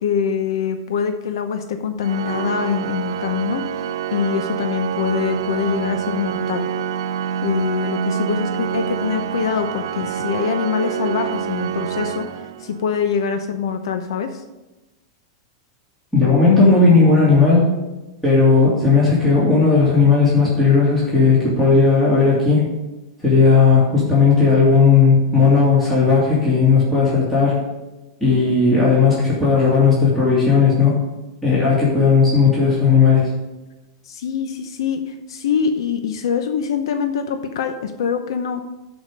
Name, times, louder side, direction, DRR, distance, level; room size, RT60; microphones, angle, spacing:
voice 1, 0.0-6.7 7.4-14.4 34.0-38.6, left 7 dB, 85° left, 7 dB, 0.8 m, -24 dB
Organ, 2.0-13.0, right 8 dB, 90° right, 0.5 m, -26 dB
voice 2, 16.1-17.7 18.2-22.7 23.2-27.6 28.2-31.0 31.4-33.3, left 4 dB, 5° left, -9 dB, 2.9 m, -15 dB
13.0 x 5.1 x 5.2 m, 1.1 s
supercardioid pair, 155°, 3 cm